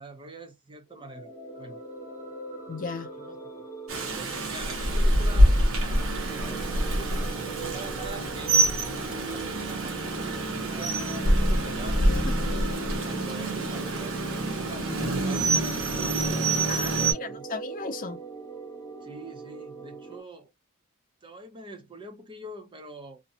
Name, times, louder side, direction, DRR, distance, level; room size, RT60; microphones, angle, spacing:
voice 1, 0.0-1.3 1.6-1.8 3.2-3.4 3.9-8.8 9.2-11.0 11.3-17.4 19.0-20.5 21.2-23.2, right 2 dB, 20° right, 0.6 m, -45 dB
sound 1, 0.9-20.2, right 3 dB, 20° left, 0.8 m, -42 dB
voice 2, 2.7-3.1 12.0-12.5 16.7-18.2, left 4 dB, 40° left, 0.4 m, -36 dB
Rain, 3.9-17.1, right 1 dB, 65° right, 0.7 m, -26 dB
2.5 x 2.1 x 2.7 m
head